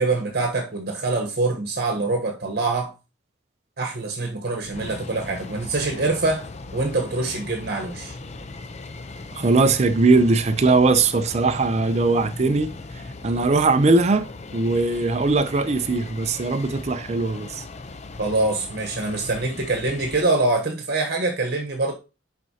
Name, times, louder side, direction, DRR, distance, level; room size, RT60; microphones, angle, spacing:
voice 1, 0.0-2.9 3.8-8.1 18.2-21.9, right 3 dB, 55° right, 1.1 m, -24 dB
sound 1, 4.6-20.2, left 3 dB, 35° left, 0.6 m, -38 dB
voice 2, 9.4-12.7 13.2-17.6, right 3 dB, 35° right, 0.5 m, -20 dB
11.0 x 4.3 x 2.8 m
head